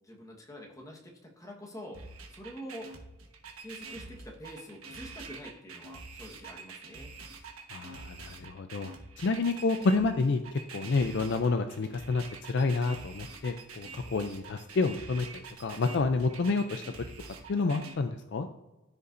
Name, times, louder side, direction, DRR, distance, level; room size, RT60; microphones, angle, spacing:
voice 1, 0.0-2.0 2.3-2.9 3.6-7.1, equal, 15° left, 0 dB, 1.3 m, -46 dB
sound 1, 1.9-17.9, right 4 dB, 75° right, 1.3 m, -46 dB
voice 2, 7.7-8.9 9.2-16.8 17.5-18.5, left 3 dB, 55° left, 8 dB, 0.4 m, -29 dB
13.5 x 5.5 x 2.6 m, 1.1 s
head